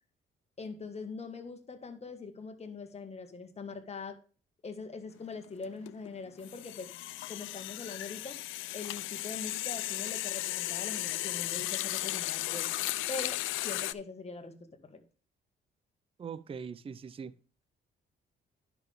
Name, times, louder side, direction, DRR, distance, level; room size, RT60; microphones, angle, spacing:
voice 1, 0.6-4.2 4.6-6.9 7.3-8.4 8.7-12.7 13.1-15.0, left 4 dB, 30° left, 1.6 m, -42 dB
sound 1, 5.1-5.3 5.6-13.9, left 16 dB, 85° left, 0.4 m, -35 dB
voice 2, 16.2-17.3, right 6 dB, 30° right, 0.5 m, -41 dB
10.5 x 5.9 x 3.5 m
cardioid pair, 90°, 20 cm